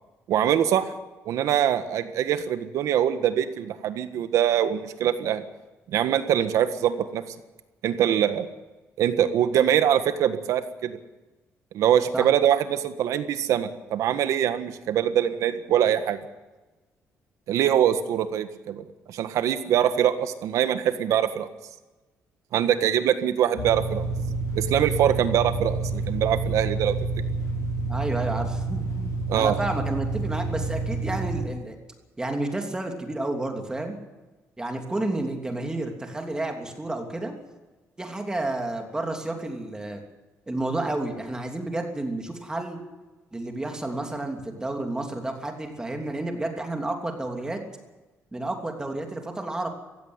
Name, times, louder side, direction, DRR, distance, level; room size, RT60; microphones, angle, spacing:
voice 1, 0.3-0.8 1.2-5.4 5.9-7.2 7.8-8.5 9.0-11.0 11.7-16.2 17.5-21.5 22.5-24.0 24.5-26.9 29.3-29.6, right 10 dB, 80° right, 10 dB, 1.6 m, -23 dB
sound 1, 23.6-31.4, right 3 dB, 70° left, 7.2 m, -28 dB
voice 2, 27.9-31.8 32.2-33.9 34.6-37.3 38.0-40.0 40.5-42.8 43.3-47.6 48.3-49.7, right 2 dB, 15° right, 3 dB, 3.0 m, -31 dB
17.0 x 15.5 x 9.7 m, 1.2 s
cardioid pair, 130°, 5 cm